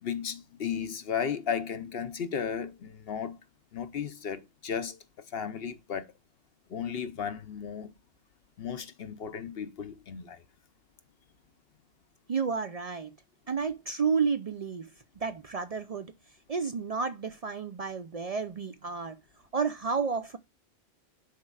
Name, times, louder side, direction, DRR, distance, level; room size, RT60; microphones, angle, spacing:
voice 1, 0.0-3.4 3.7-5.0 5.3-6.1 6.7-7.9 8.6-10.4, left 7 dB, 60° left, 0.8 m, -34 dB
voice 2, 12.3-13.1 13.5-14.9 15.2-16.1 16.5-19.2 19.5-20.4, right 5 dB, 70° right, 0.3 m, -31 dB
10.5 x 4.3 x 2.3 m
omnidirectional pair, 1.3 m